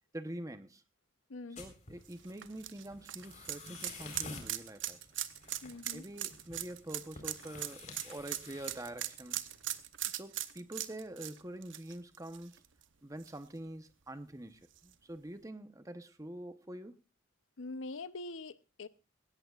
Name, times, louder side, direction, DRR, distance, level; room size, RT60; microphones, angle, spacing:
voice 1, 0.1-0.8 1.6-5.0 5.9-9.5 10.0-12.6 13.0-17.0, right 1 dB, 15° right, 0.9 m, -45 dB
voice 2, 1.3-1.6 5.6-6.0 17.6-18.9, left 2 dB, 75° left, 0.8 m, -43 dB
sound 1, 1.5-9.8, left 3 dB, 40° left, 4.2 m, -52 dB
sound 2, 2.1-12.8 13.2-13.3 14.8-14.9, right 13 dB, 70° right, 0.9 m, -40 dB
20.0 x 17.5 x 2.4 m
head